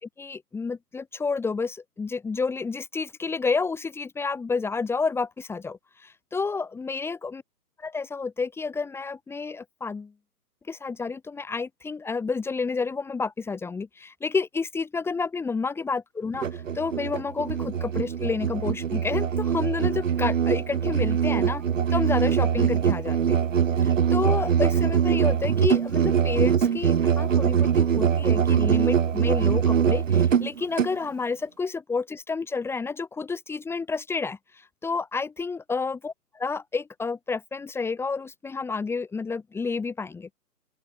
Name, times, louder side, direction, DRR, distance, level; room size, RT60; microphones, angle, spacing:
voice 1, 0.0-7.4 7.8-10.1 10.7-21.6 21.9-23.4 23.8-40.3, left 4 dB, 5° left, 4.2 m, -30 dB
Musical instrument, 16.3-31.0, right 8 dB, 55° right, 0.9 m, -23 dB
open air
figure-of-eight pair, 140°, 48 cm